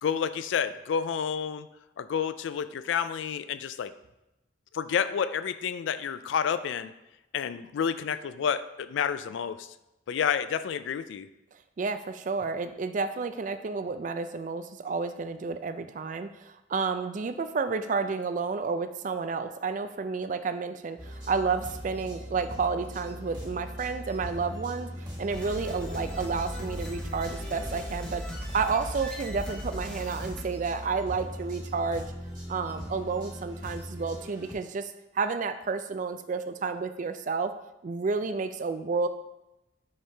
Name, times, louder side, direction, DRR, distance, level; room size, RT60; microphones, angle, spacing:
voice 1, 0.0-1.7 2.0-3.9 4.7-6.9 7.3-9.7 10.1-11.3, left 7 dB, 75° left, 13 dB, 0.3 m, -29 dB
voice 2, 11.8-24.9 25.2-28.2 28.5-32.1 32.5-37.5 37.8-39.1, right 4 dB, 40° right, 10 dB, 0.3 m, -31 dB
sound 1, 21.0-34.5, equal, 25° right, 1.3 m, -40 dB
sound 2, 25.3-30.4, equal, 5° left, 0.9 m, -38 dB
5.5 x 5.5 x 3.3 m, 0.91 s
head